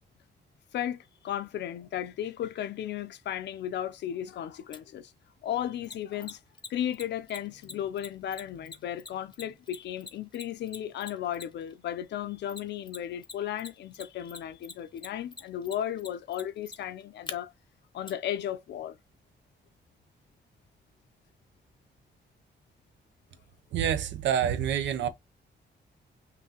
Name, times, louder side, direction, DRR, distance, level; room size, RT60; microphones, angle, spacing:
voice 1, 0.7-5.1 5.4-6.4 6.7-17.5 17.9-19.0, left 10 dB, 70° left, 0.6 m, -35 dB
Mechanisms, 4.7-4.8 5.8-11.7 12.5-13.3 13.6-17.3 18.1-18.2, left 4 dB, 25° left, 0.7 m, -42 dB
voice 2, 23.7-25.1, right 9 dB, 85° right, 0.8 m, -27 dB
5.8 x 2.7 x 2.8 m
wide cardioid pair, 160°, 18 cm